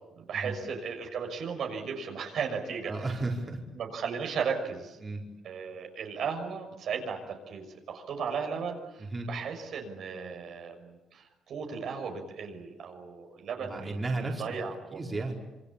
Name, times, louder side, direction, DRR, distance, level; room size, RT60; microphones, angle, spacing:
voice 1, 0.1-3.1 3.7-5.0 5.4-13.9 14.4-15.0, right 6 dB, 70° right, 2 dB, 6.3 m, -35 dB
voice 2, 2.8-3.6 5.0-5.2 9.0-9.3 13.6-14.4 14.9-15.4, right 2 dB, 30° right, 0 dB, 5.0 m, -33 dB
27.0 x 25.0 x 8.6 m, 1.0 s
cardioid pair, 90°, 0 cm